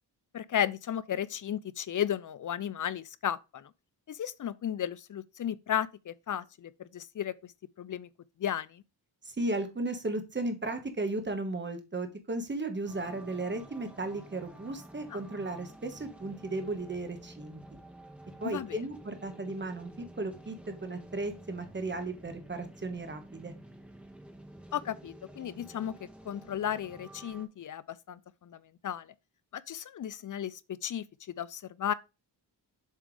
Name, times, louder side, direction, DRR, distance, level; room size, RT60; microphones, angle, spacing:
voice 1, 0.3-3.7 4.1-7.5 7.8-8.1 8.4-8.8 15.1-15.2 18.4-18.8 24.7-25.9 26.3-29.1 29.5-31.1 31.4-31.9, left 9 dB, 45° left, 0.5 m, -34 dB
voice 2, 9.2-17.8 18.4-23.5, right 2 dB, 25° right, 1.3 m, -35 dB
sound 1, 12.9-27.5, right 1 dB, 5° right, 1.2 m, -51 dB
7.4 x 3.4 x 5.0 m
wide cardioid pair, 110°, 43 cm